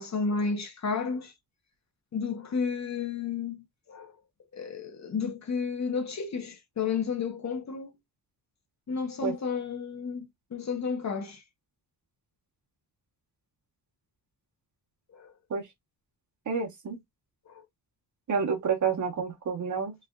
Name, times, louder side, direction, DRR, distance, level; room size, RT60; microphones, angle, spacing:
voice 1, 0.0-1.3 2.1-4.1 4.5-8.0 8.9-11.4 15.1-15.3 17.5-17.6, left 5 dB, 45° left, 0.9 m, -32 dB
voice 2, 16.5-17.0 18.3-19.9, right 6 dB, 50° right, 1.3 m, -29 dB
3.6 x 3.3 x 2.4 m
wide cardioid pair, 170°, 37 cm